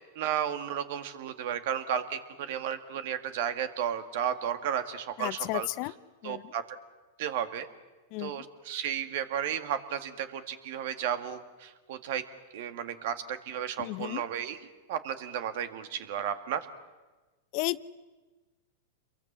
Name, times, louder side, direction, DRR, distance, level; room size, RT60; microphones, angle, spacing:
voice 1, 0.0-5.7 6.2-6.6 7.2-7.7 8.2-12.2 12.5-16.7, right 9 dB, 65° right, 10 dB, 2.1 m, -33 dB
voice 2, 5.2-5.9 6.2-6.4 8.1-8.4 13.8-14.2 17.5-17.9, left 21 dB, 50° left, 17 dB, 0.7 m, -33 dB
28.0 x 23.0 x 7.5 m, 1.2 s
hypercardioid pair, 110°, 0 cm